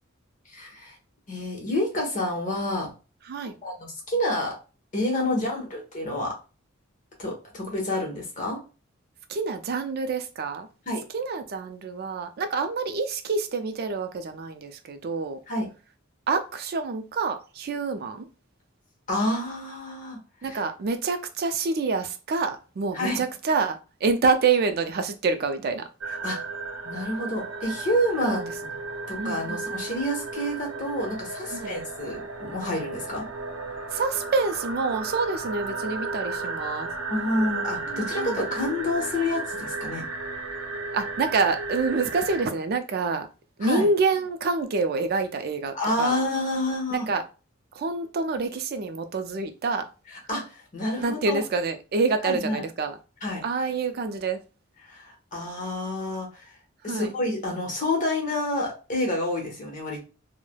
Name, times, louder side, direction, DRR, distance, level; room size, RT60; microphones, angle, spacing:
voice 1, 0.5-1.0 1.3-2.9 3.6-4.5 4.9-6.3 7.2-8.6 10.9-11.0 15.5-15.7 19.1-20.6 22.9-23.2 26.1-26.4 26.8-28.4 29.1-33.3 37.1-40.0 43.6-43.9 45.7-47.1 50.1-51.4 52.2-52.6 53.2-53.4 54.8-56.6 56.8-60.0, left 1 dB, 40° left, 0.9 m, -28 dB
voice 2, 9.3-10.7 11.1-15.4 16.3-18.3 20.4-25.8 28.2-28.4 29.2-29.6 31.5-31.7 33.9-36.9 37.9-38.4 40.9-43.3 43.6-46.2 46.9-47.2 47.7-49.9 51.0-53.0 53.4-54.4 56.9-57.1, right 4 dB, 50° right, 0.4 m, -27 dB
sound 1, 26.0-42.5, right 3 dB, 90° right, 0.6 m, -34 dB
3.2 x 2.0 x 2.2 m
head